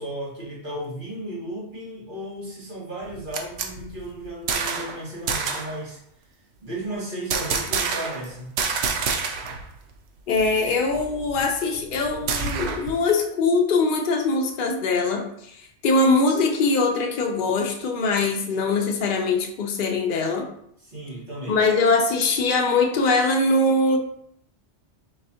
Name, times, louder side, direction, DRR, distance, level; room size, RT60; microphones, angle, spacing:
voice 1, 0.0-6.0 6.6-8.6 20.8-21.6, right 1 dB, 45° right, -5 dB, 1.6 m, -34 dB
sound 1, 3.0-5.0 5.3-5.8 7.3-8.3 8.6-9.6 9.9-10.0 10.4-13.0, right 5 dB, 70° right, 0.8 m, -28 dB
voice 2, 10.3-15.5 15.8-20.5 21.5-24.0, left 3 dB, 55° left, 1 dB, 0.7 m, -22 dB
4.8 x 3.2 x 2.7 m, 0.70 s
omnidirectional pair, 1.2 m